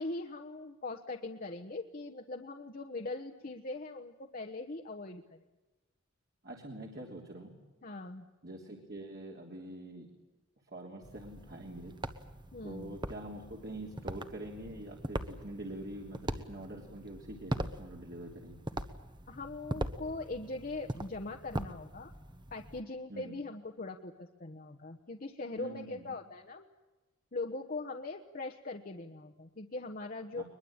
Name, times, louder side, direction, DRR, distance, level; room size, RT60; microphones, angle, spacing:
voice 1, 0.0-5.4 7.8-8.3 12.5-13.0 19.3-22.1 22.5-26.7 27.3-30.4, left 2 dB, 45° left, 2 dB, 1.2 m, -41 dB
voice 2, 6.4-7.5 8.4-10.1 10.7-11.9 12.6-18.6 23.1-23.4 25.6-26.0 30.3-30.4, right 1 dB, 50° right, 0 dB, 3.3 m, -45 dB
sound 1, 11.0-22.8, right 1 dB, 20° right, 1.2 m, -41 dB
22.0 x 22.0 x 8.8 m, 1.1 s
head